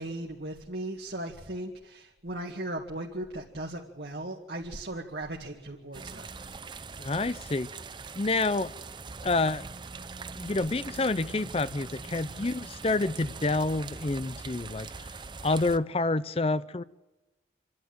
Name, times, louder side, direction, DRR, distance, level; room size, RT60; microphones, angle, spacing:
voice 1, 0.0-6.5, right 1 dB, 65° right, 2.1 m, -37 dB
sound 1, 5.9-15.8, right 4 dB, 25° right, 0.6 m, -42 dB
voice 2, 7.0-7.7 8.2-8.7 9.2-9.6 10.4-15.1 15.4-16.8, left 2 dB, 35° left, 0.6 m, -28 dB
27.5 x 12.0 x 9.3 m
head